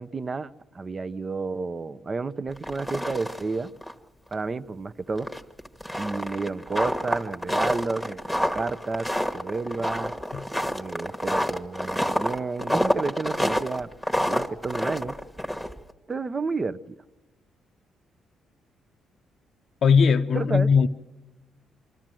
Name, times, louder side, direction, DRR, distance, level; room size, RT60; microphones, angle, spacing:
voice 1, 0.0-3.7 4.3-5.3 6.0-9.1 9.3-10.1 10.7-13.9 14.2-15.1 16.1-17.0 20.3-20.7, right 3 dB, 30° right, 0.7 m, -31 dB
sound 1, 2.5-3.5 3.8-3.9 4.3-4.4 5.2-15.9, equal, ahead, 1.2 m, -28 dB
voice 2, 19.8-20.9, left 6 dB, 60° left, 0.6 m, -19 dB
25.5 x 13.5 x 7.6 m
cardioid pair, 90°, 0 cm